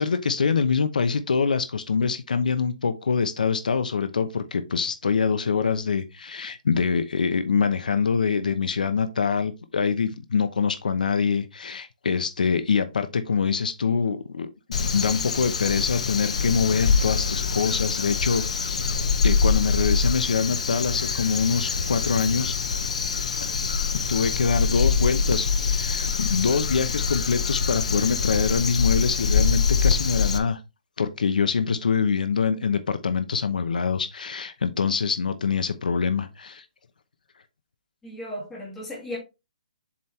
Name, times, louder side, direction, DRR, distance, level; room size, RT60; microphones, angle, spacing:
voice 1, 0.0-19.0 19.2-22.5 24.1-30.6 31.0-36.6, left 5 dB, 75° left, 0.9 m, -25 dB
Crow, 14.7-30.4, left 5 dB, 50° left, 0.9 m, -24 dB
voice 2, 38.0-39.2, left 1 dB, 5° left, 2.3 m, -35 dB
7.3 x 4.4 x 3.3 m
hypercardioid pair, 180°, 4 cm